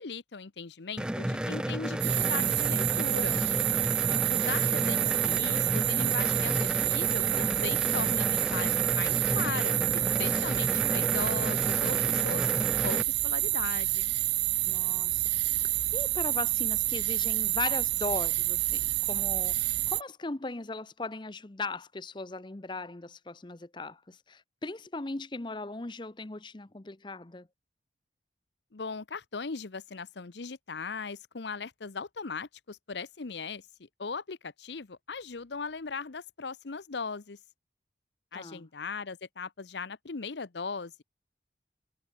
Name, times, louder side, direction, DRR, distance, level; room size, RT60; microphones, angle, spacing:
voice 1, 0.0-3.4 4.3-9.8 10.2-14.1 28.7-37.4 38.3-41.0, left 4 dB, 75° left, 0.8 m, -38 dB
sound 1, 1.0-13.0, right 1 dB, 5° right, 0.3 m, -32 dB
sound 2, 2.0-20.0, right 19 dB, 75° right, 0.5 m, -28 dB
voice 2, 4.1-4.9 14.6-15.2 15.6-27.5 38.3-38.7, left 3 dB, 25° left, 0.7 m, -38 dB
head